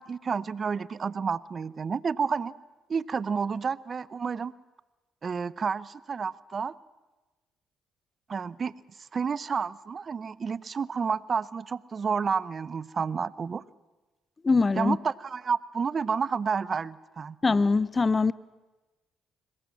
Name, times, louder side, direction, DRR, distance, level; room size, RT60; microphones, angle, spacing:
voice 1, 0.0-2.5 2.9-4.5 5.2-6.7 8.3-8.7 9.1-13.6 14.8-17.4, right 6 dB, 45° right, 0.7 m, -30 dB
voice 2, 14.4-15.0 17.4-18.3, left 4 dB, 30° left, 0.7 m, -22 dB
22.0 x 20.0 x 7.4 m
supercardioid pair, 60°, 0 cm